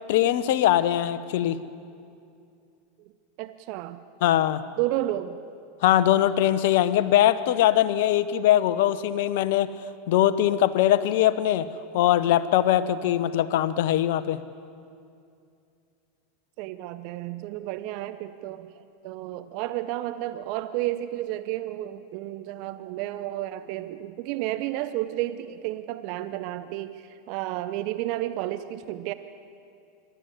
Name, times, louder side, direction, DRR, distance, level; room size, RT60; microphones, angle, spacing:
voice 1, 0.1-1.6 4.2-4.6 5.8-9.7 10.1-11.7 11.9-14.4, left 12 dB, 65° left, 14 dB, 0.9 m, -21 dB
voice 2, 3.4-4.0 4.8-5.4 16.6-18.7 19.0-29.1, right 14 dB, 55° right, 11 dB, 0.8 m, -31 dB
26.0 x 12.5 x 8.3 m, 2.5 s
hypercardioid pair, 90°, 0 cm